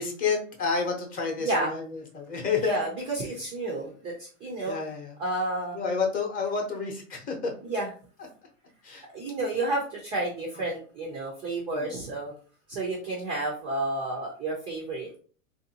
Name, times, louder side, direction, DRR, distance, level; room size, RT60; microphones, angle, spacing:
voice 1, 0.0-2.8 4.7-5.1 5.7-7.5 8.8-9.1 11.7-12.0, left 5 dB, 20° left, 2 dB, 0.7 m, -30 dB
voice 2, 1.4-1.7 2.4-4.8 5.2-5.8 7.6-7.9 9.1-12.3 12.7-15.2, right 2 dB, 15° right, -1 dB, 0.3 m, -31 dB
3.6 x 2.5 x 2.7 m, 0.40 s
supercardioid pair, 150°, 39 cm